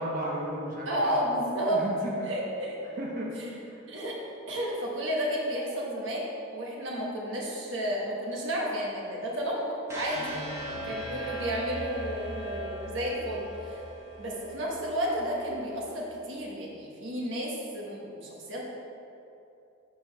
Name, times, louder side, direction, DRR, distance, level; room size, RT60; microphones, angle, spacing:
voice 1, 0.0-1.2 1.7-2.3 3.0-3.8 10.1-10.9, right 1 dB, 40° right, -3 dB, 0.9 m, -36 dB
voice 2, 0.9-1.9 2.2-3.0 3.9-4.2 4.5-10.3 10.8-13.8 14.2-18.6, equal, 60° right, -3 dB, 1.3 m, -32 dB
sound 1, 9.9-16.0, right 1 dB, 15° right, 1.2 m, -39 dB
5.5 x 5.1 x 6.1 m, 2.7 s
head